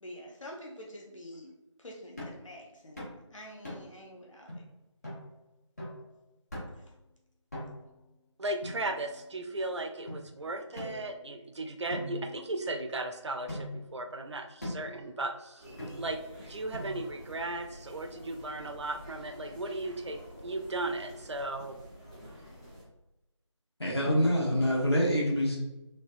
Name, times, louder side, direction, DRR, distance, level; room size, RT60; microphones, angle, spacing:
voice 1, 0.0-4.7 6.7-6.9, equal, 80° left, 0 dB, 0.7 m, -47 dB
sound 1, 2.2-2.4 3.0-3.2 3.6-4.0 4.5-4.6 5.0-5.2 5.8-6.0 6.5-6.9 7.5-8.0 8.6-9.3 10.1-10.2 10.7-11.4 11.9-12.9 13.5-13.9 14.6-15.0 15.8-16.2 16.7-17.2, left 1 dB, 30° left, 1.2 m, -41 dB
voice 2, 8.4-15.7 16.0-16.2 16.5-21.8, right 2 dB, 65° right, 6 dB, 0.4 m, -36 dB
sound 2, 15.6-22.8, equal, 15° left, 0.8 m, -49 dB
voice 3, 23.8-25.6, equal, 55° left, -3 dB, 1.0 m, -26 dB
3.2 x 3.2 x 2.5 m, 0.96 s
figure-of-eight pair, 170°, 16 cm